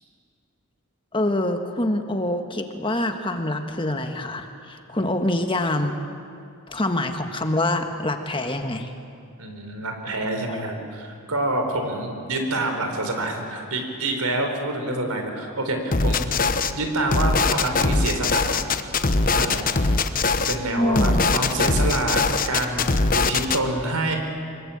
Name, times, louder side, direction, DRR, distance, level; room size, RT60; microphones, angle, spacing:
voice 1, 1.1-5.9 6.7-8.9 10.5-10.6 20.7-21.3, left 1 dB, 20° left, 6 dB, 1.5 m, -25 dB
voice 2, 9.4-18.8 19.2-19.7 20.5-24.2, right 2 dB, 90° right, 4 dB, 4.4 m, -27 dB
sound 1, 15.9-16.7 17.1-20.6 20.9-23.6, left 3 dB, 40° left, 1.0 m, -21 dB
24.0 x 22.5 x 8.7 m, 2.6 s
head